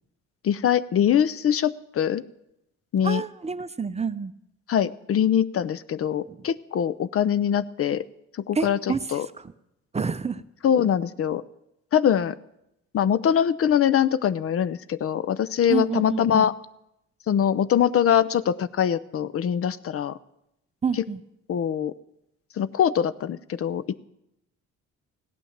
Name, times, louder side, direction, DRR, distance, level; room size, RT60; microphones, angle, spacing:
voice 1, 0.4-2.2 2.9-3.2 4.7-8.0 8.5-8.8 9.1-9.3 10.6-11.4 11.9-12.4 12.9-16.5 17.3-20.2 21.5-21.9 22.6-24.0, left 9 dB, 50° left, 17 dB, 0.5 m, -23 dB
voice 2, 3.0-4.3 6.3-6.5 8.5-9.5 9.9-10.4 15.7-16.5 20.8-21.2, right 5 dB, 20° right, 13 dB, 0.6 m, -29 dB
16.0 x 9.0 x 7.2 m, 0.84 s
cardioid pair, 90°, 30 cm